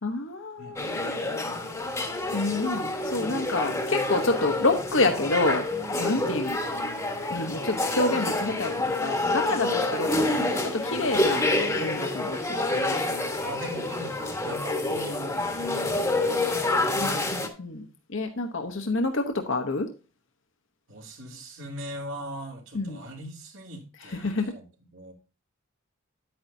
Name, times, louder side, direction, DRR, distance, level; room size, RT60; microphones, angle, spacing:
voice 1, 0.0-1.1 2.3-5.7 6.0-6.6 7.3-11.5 11.8-12.4 12.7-12.8 17.0-17.9 18.1-19.9 22.7-23.0 24.1-24.5, left 2 dB, 60° left, 0.9 m, -28 dB
sound 1, 0.8-17.5, left 2 dB, 15° left, 1.2 m, -28 dB
voice 2, 13.4-14.2 14.4-16.5 20.9-24.6 24.9-25.1, right 1 dB, 60° right, 2.7 m, -40 dB
10.5 x 8.7 x 2.7 m
head